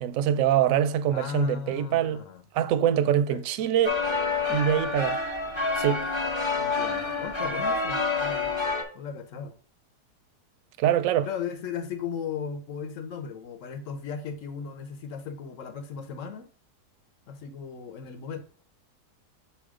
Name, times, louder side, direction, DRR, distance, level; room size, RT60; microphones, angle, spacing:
voice 1, 0.0-2.2 2.5-4.0 4.5-5.2 5.8-6.1 10.8-11.3, right 10 dB, 70° right, 0.8 m, -24 dB
voice 2, 1.1-2.4 3.0-3.7 6.6-8.5 8.9-9.5 11.2-16.5 17.3-18.4, left 6 dB, 55° left, 1.2 m, -37 dB
sound 1, 3.8-8.8, left 4 dB, 25° left, 0.7 m, -28 dB
7.1 x 3.1 x 4.9 m
omnidirectional pair, 1.7 m